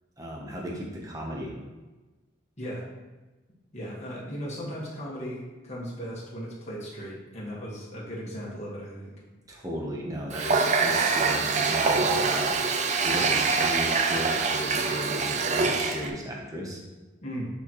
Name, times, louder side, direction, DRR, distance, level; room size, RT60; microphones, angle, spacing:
voice 1, 0.2-1.5 9.5-12.6 13.0-16.8, equal, 15° right, -2 dB, 0.9 m, -35 dB
voice 2, 3.7-9.1 17.2-17.5, equal, 35° left, -5 dB, 1.6 m, -37 dB
Water tap faucet, 10.3-16.1, right 4 dB, 35° right, 0.4 m, -25 dB
8.5 x 4.3 x 3.1 m, 1.2 s
head